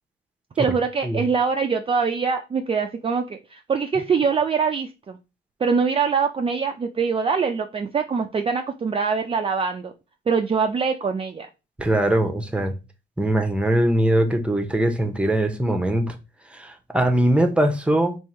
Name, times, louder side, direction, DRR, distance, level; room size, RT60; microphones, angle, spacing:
voice 1, 0.6-5.2 5.6-9.9 10.3-11.5, right 5 dB, 30° right, 0.4 m, -23 dB
voice 2, 11.8-12.7 13.2-16.1 16.5-18.2, right 1 dB, 5° right, 0.8 m, -21 dB
3.6 x 2.6 x 4.2 m
cardioid pair, 90°, 20 cm